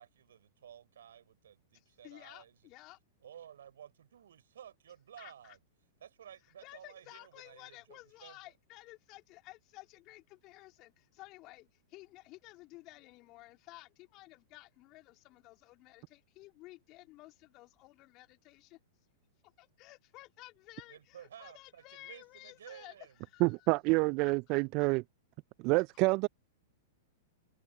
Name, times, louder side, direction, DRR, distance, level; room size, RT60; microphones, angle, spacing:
voice 1, 0.0-2.6 3.2-5.6 6.0-8.4 20.9-23.2, right 9 dB, 70° right, 4.7 m, -54 dB
voice 2, 1.7-3.0 5.2-5.6 6.6-18.8 19.4-23.7 24.2-24.6 25.9-26.0, left 20 dB, 40° left, 2.8 m, -54 dB
voice 3, 23.4-25.0 25.6-26.3, right 27 dB, 45° right, 0.4 m, -28 dB
hypercardioid pair, 105°, 0 cm